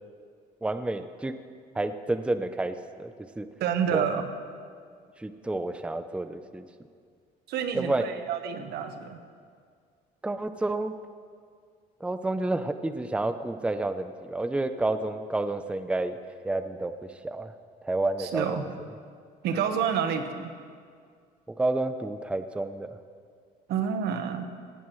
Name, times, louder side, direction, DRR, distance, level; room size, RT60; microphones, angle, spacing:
voice 1, 0.6-1.3 1.7-3.5 3.9-4.1 5.2-6.6 7.7-8.0 10.2-10.9 12.0-16.2 16.4-16.9 17.2-17.5 17.8-18.7 21.5-23.0, right 2 dB, 5° right, 10 dB, 0.6 m, -30 dB
voice 2, 3.6-4.2 7.5-9.2 18.2-18.8 19.4-20.5 23.7-24.4, right 7 dB, 75° right, 7 dB, 1.3 m, -29 dB
18.5 x 16.5 x 3.2 m, 2.1 s
cardioid pair, 110°, 17 cm